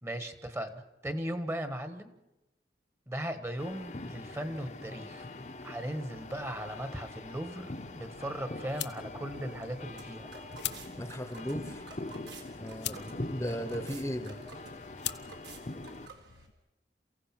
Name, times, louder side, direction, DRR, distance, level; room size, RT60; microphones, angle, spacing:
voice 1, 0.0-2.1 3.1-5.3 5.6-10.3, right 1 dB, 15° right, 9 dB, 1.4 m, -37 dB
sound 1, 3.6-16.1, left 2 dB, 40° left, 1.0 m, -43 dB
sound 2, 6.1-16.5, left 12 dB, 75° left, 0.9 m, -45 dB
sound 3, 9.3-16.5, right 3 dB, 75° right, 3.7 m, -51 dB
voice 2, 11.0-11.8 12.6-14.4, equal, 15° left, 10 dB, 1.1 m, -36 dB
28.5 x 16.0 x 6.0 m, 0.95 s
head